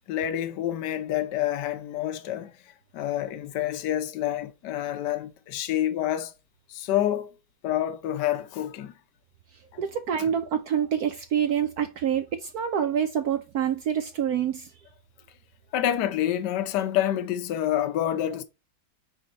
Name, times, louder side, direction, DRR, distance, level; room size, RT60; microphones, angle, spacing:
voice 1, 0.1-2.5 2.9-6.3 6.7-7.3 7.6-8.9 9.7-9.8 10.2-10.3 15.7-18.4, left 11 dB, 65° left, 1.3 m, -28 dB
voice 2, 9.8-14.7, right 8 dB, 70° right, 0.9 m, -26 dB
5.6 x 4.3 x 3.9 m
omnidirectional pair, 2.2 m